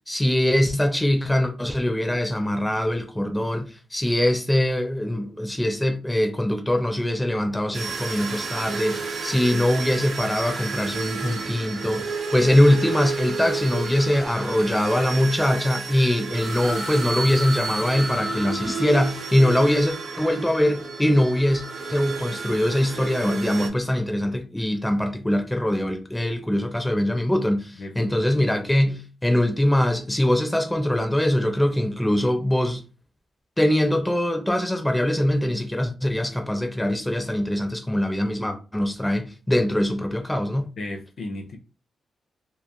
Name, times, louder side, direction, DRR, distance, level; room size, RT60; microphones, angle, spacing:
voice 1, 0.1-21.6 21.9-32.8 33.6-40.7, left 1 dB, 10° left, 0.4 m, -22 dB
sound 1, 7.7-23.7, right 4 dB, 60° right, 0.4 m, -31 dB
voice 2, 27.8-28.4 40.8-41.6, left 2 dB, 60° left, 0.5 m, -35 dB
2.9 x 2.3 x 2.2 m
cardioid pair, 95°, 0 cm